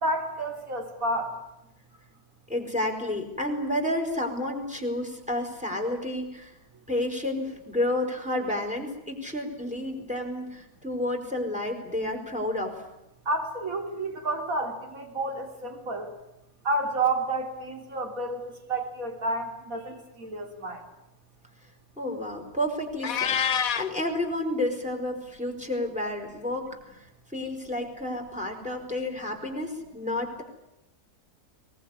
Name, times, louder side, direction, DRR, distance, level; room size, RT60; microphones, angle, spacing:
voice 1, 0.0-1.4 13.3-16.1 16.6-20.8, right 2 dB, 60° right, 5 dB, 3.7 m, -30 dB
voice 2, 2.5-6.5 6.9-12.8 22.0-23.4 23.8-26.7 27.0-27.1 27.3-30.4, left 1 dB, 5° right, 4 dB, 5.3 m, -30 dB
Meow, 23.0-23.9, left 7 dB, 60° left, 1.5 m, -26 dB
23.0 x 20.0 x 9.9 m, 0.91 s
omnidirectional pair, 1.7 m